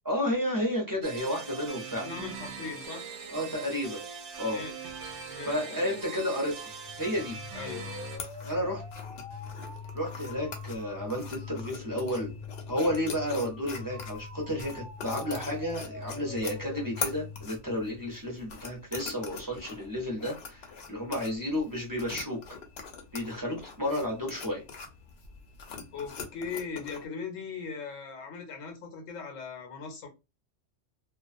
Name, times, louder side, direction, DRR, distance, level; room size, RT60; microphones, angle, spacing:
voice 1, 0.0-2.1 3.3-4.0 4.4-4.6 5.4-6.7 7.0-7.4 8.4-8.8 9.9-12.3 12.7-22.4 23.1-24.6, left 1 dB, 20° right, 0.6 m, -32 dB
sound 1, 1.0-8.2, right 5 dB, 70° right, 0.8 m, -41 dB
voice 2, 2.0-3.1 4.5-4.7 5.3-6.0 7.5-7.9 25.9-30.1, left 5 dB, 85° left, 1.0 m, -39 dB
sound 2, 6.6-18.5, left 5 dB, 30° left, 0.5 m, -43 dB
sound 3, 8.0-27.1, left 5 dB, 60° left, 0.8 m, -43 dB
2.3 x 2.3 x 2.5 m
omnidirectional pair, 1.3 m